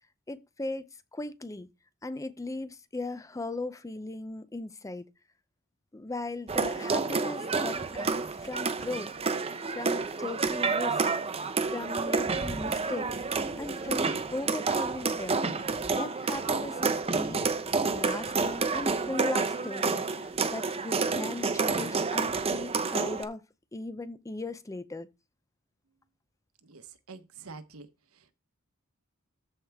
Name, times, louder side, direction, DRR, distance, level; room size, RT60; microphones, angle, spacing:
voice 1, 0.3-0.9 1.1-1.7 2.0-5.0 5.9-11.0 11.4-13.2 13.6-23.4 23.7-25.1, left 2 dB, 15° left, 0.5 m, -38 dB
sound 1, 6.5-23.2, right 4 dB, 25° right, 0.7 m, -29 dB
voice 2, 26.6-27.9 28.1-28.3, right 4 dB, 75° right, 1.1 m, -47 dB
13.5 x 4.8 x 3.5 m
head